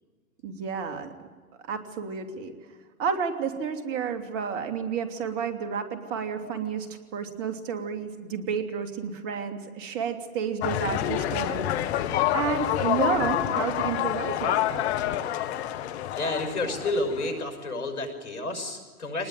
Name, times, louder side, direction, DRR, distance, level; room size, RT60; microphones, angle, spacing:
voice 1, 0.4-1.1 1.7-2.5 3.0-6.9 7.1-11.7 12.3-14.8, right 6 dB, 30° right, 7 dB, 2.9 m, -31 dB
sound 1, 10.6-17.4, left 12 dB, 45° left, 1.5 m, -27 dB
voice 2, 16.1-19.3, left 2 dB, 85° left, 6 dB, 6.6 m, -30 dB
25.0 x 20.0 x 9.2 m, 1.4 s
hypercardioid pair, 125°, 44 cm